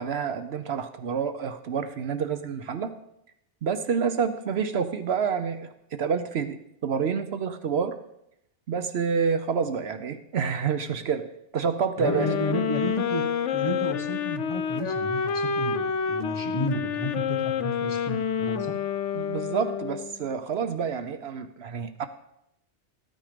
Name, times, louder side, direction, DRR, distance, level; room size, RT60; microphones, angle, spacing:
voice 1, 0.0-2.9 3.6-6.6 6.8-8.0 8.7-12.3 19.1-22.1, right 6 dB, 65° right, 10 dB, 0.9 m, -28 dB
sound 1, 12.0-20.2, left 7 dB, 85° left, 1.0 m, -28 dB
voice 2, 12.0-13.2 13.5-18.7, equal, 25° left, 3 dB, 1.2 m, -32 dB
13.5 x 9.1 x 5.0 m, 0.80 s
omnidirectional pair, 1.2 m